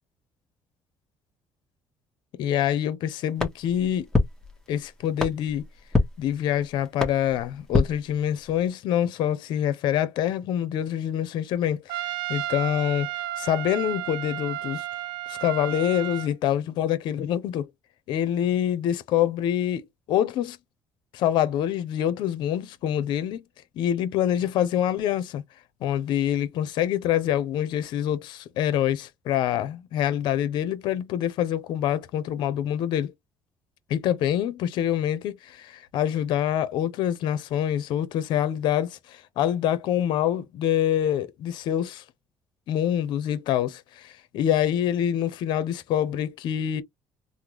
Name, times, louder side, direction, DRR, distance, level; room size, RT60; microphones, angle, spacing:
voice 1, 2.4-4.1 4.7-5.7 6.2-13.1 13.4-14.8 15.3-17.7 18.1-20.6 21.1-23.4 23.8-25.4 25.8-33.1 33.9-42.0 42.7-46.8, left 10 dB, 75° left, 0.7 m, -26 dB
sound 1, 3.4-8.7, left 2 dB, 5° left, 1.2 m, -29 dB
Trumpet, 11.9-16.3, right 14 dB, 85° right, 0.5 m, -33 dB
3.6 x 2.2 x 3.0 m
cardioid pair, 110°, 8 cm